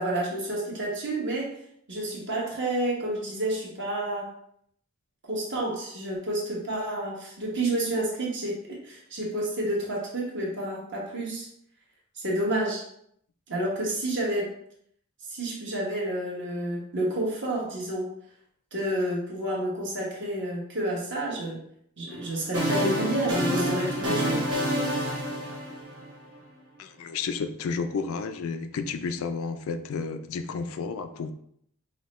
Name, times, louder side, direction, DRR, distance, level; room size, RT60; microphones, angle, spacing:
voice 1, 0.0-1.5 1.9-4.3 5.3-11.5 12.1-12.8 13.5-14.5 15.3-18.1 18.7-21.6 22.0-24.4, right 1 dB, 50° right, -4 dB, 1.2 m, -30 dB
sound 1, 22.1-26.3, equal, 75° right, 1.2 m, -28 dB
voice 2, 26.8-31.3, left 5 dB, 70° left, 9 dB, 0.3 m, -32 dB
5.4 x 2.2 x 3.1 m, 0.70 s
head